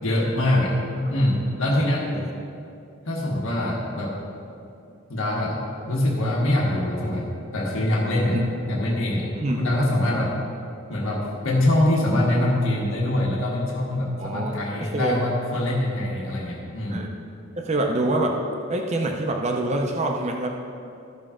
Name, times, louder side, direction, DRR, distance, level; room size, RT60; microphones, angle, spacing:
voice 1, 0.0-0.7 1.1-2.0 3.0-4.1 5.1-8.4 8.7-9.3 9.6-10.3 10.9-17.0, left 1 dB, 80° left, -4 dB, 1.5 m, -24 dB
voice 2, 14.2-14.6 14.9-15.2 16.9-17.1 17.6-18.4 18.7-20.5, right 2 dB, 30° right, 2 dB, 0.6 m, -25 dB
14.0 x 5.8 x 3.7 m, 2.5 s
head